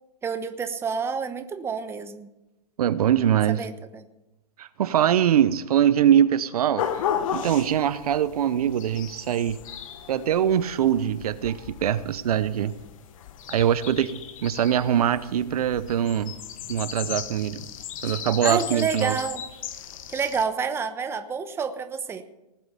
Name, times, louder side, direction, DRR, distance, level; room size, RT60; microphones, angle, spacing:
voice 1, 0.2-2.3 3.6-4.0 18.4-19.4 20.1-22.2, right 6 dB, 10° right, 9 dB, 1.0 m, -29 dB
voice 2, 2.8-3.7 4.6-7.0 7.3-9.6 10.1-12.7 13.5-14.1 14.4-16.3 16.7-17.6 18.0-19.2, right 10 dB, 65° right, 14 dB, 0.9 m, -23 dB
sound 1, 6.8-20.4, left 9 dB, 55° left, 1.5 m, -35 dB
19.0 x 7.8 x 6.9 m, 0.96 s
hypercardioid pair, 130°, 21 cm